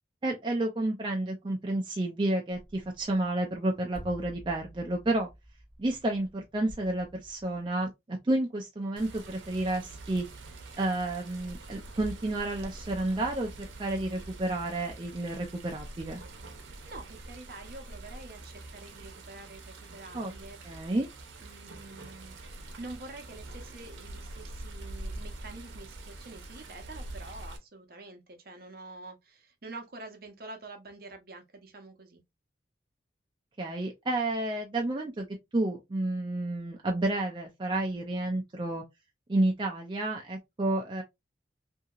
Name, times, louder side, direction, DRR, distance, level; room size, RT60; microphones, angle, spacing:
voice 1, 0.2-5.3 5.8-10.3 10.8-16.2 20.1-20.3 20.6-21.1 33.6-35.3 35.5-38.8 39.3-41.0, right 2 dB, 25° right, 0.4 m, -30 dB
sound 1, 2.5-7.9, equal, 25° left, 1.4 m, -51 dB
Water, 9.0-27.6, right 2 dB, 90° right, 0.7 m, -45 dB
voice 2, 16.6-20.6 21.4-22.4 22.8-32.2, right 2 dB, 50° right, 0.7 m, -47 dB
2.8 x 2.7 x 2.3 m
head